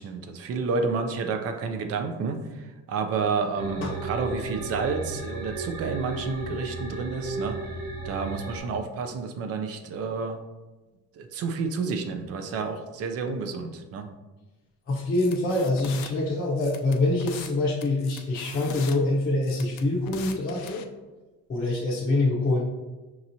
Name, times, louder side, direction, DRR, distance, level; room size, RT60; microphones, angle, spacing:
voice 1, 0.0-7.8 8.0-10.4 11.2-14.1, right 4 dB, 45° right, 6 dB, 0.4 m, -30 dB
sound 1, 3.6-8.6, right 2 dB, 65° right, 1.1 m, -34 dB
voice 2, 14.9-20.8 21.5-22.6, left 2 dB, 25° left, -7 dB, 0.7 m, -25 dB
sound 2, 15.1-16.1 16.6-17.5 17.8-19.0 19.4-20.8, left 9 dB, 80° left, 0.5 m, -41 dB
5.9 x 2.9 x 2.6 m, 1.2 s
cardioid pair, 170°, 36 cm